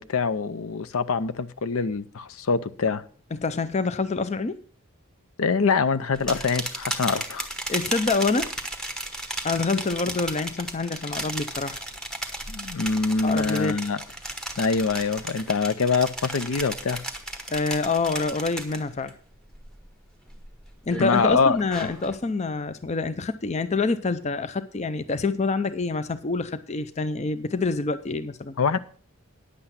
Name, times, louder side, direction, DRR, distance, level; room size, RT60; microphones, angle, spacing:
voice 1, 0.0-3.0 5.4-7.5 12.5-14.0 14.6-17.0 21.0-21.6 28.6-28.8, left 4 dB, 75° left, 0.6 m, -24 dB
voice 2, 3.3-4.6 7.7-8.5 9.4-11.8 13.2-13.8 17.5-19.1 20.9-28.5, left 3 dB, 30° left, 0.5 m, -26 dB
sound 1, 6.1-19.1 19.5-19.9 20.3-22.2, right 1 dB, 5° left, 1.0 m, -34 dB
9.9 x 8.0 x 5.7 m
head